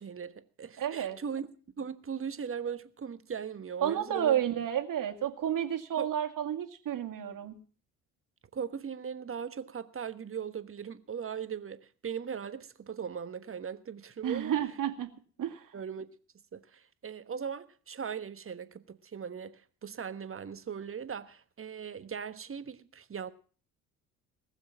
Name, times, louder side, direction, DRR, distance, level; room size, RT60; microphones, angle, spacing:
voice 1, 0.0-1.5 1.8-4.4 6.0-6.1 8.5-14.6 15.7-16.1 16.5-23.3, right 7 dB, 30° right, 1.3 m, -39 dB
voice 2, 0.8-1.2 3.8-7.5 14.2-15.1 15.4-15.7, right 10 dB, 50° right, 2.2 m, -31 dB
19.5 x 7.4 x 7.3 m
hypercardioid pair, 55°, 42 cm